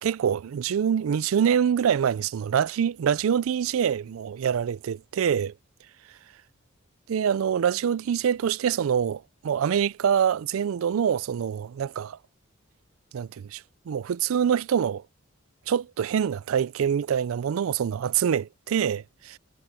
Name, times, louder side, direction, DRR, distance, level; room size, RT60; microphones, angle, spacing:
voice 1, 0.0-5.5 7.1-12.2 13.1-15.0 15.7-19.4, right 8 dB, 80° right, 0.4 m, -25 dB
head